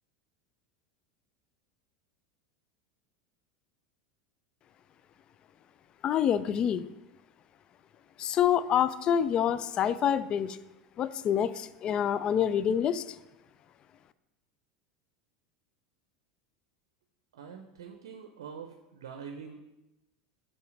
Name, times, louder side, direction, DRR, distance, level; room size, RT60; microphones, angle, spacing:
voice 1, 6.0-6.9 8.2-10.6 11.0-13.0, left 9 dB, 40° left, 15 dB, 0.3 m, -27 dB
voice 2, 17.3-19.6, right 6 dB, 75° right, 5 dB, 0.5 m, -44 dB
5.5 x 4.1 x 5.1 m, 0.98 s
hypercardioid pair, 85°, 2 cm